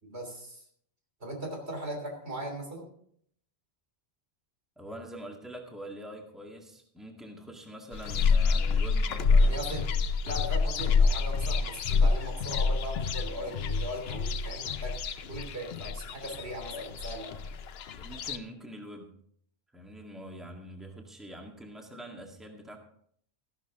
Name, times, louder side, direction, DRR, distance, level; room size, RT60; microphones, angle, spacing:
voice 1, 0.0-0.6 1.2-2.9 9.4-9.8 10.2-15.0 15.3-17.3, equal, 70° right, 1 dB, 3.4 m, -39 dB
voice 2, 4.8-9.5 9.9-10.0 17.9-19.1 19.7-22.8, equal, ahead, 1 dB, 1.9 m, -44 dB
sound 1, 7.9-18.4, left 4 dB, 70° left, 0.9 m, -27 dB
14.0 x 12.0 x 3.6 m, 0.65 s
omnidirectional pair, 1.1 m